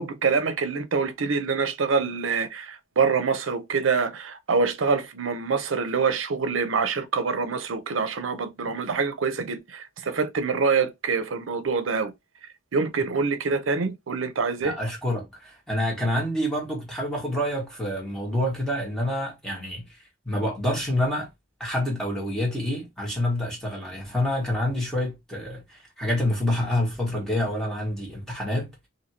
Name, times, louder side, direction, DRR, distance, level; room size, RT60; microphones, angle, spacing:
voice 1, 0.0-12.1 12.7-14.8, right 5 dB, 80° right, 0.6 m, -25 dB
voice 2, 14.6-19.9 20.2-21.3 21.6-28.9, left 1 dB, 5° left, 1.4 m, -27 dB
2.9 x 2.7 x 2.8 m
head